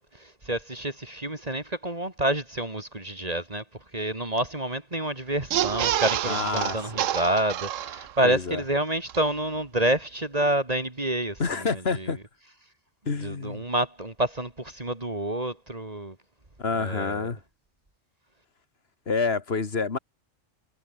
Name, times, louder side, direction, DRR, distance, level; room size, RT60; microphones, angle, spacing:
voice 1, 0.1-3.6 3.9-12.1 13.2-16.2 16.7-17.3, right 1 dB, 30° right, 2.7 m, -28 dB
sound 1, 5.4-8.4 8.7-8.8 9.1-9.2, right 11 dB, 85° right, 1.1 m, -28 dB
voice 2, 6.2-7.1 8.2-8.6 11.4-12.2 13.1-13.6 16.6-17.4 19.1-20.0, left 4 dB, 55° left, 2.1 m, -28 dB
omnidirectional pair, 1.3 m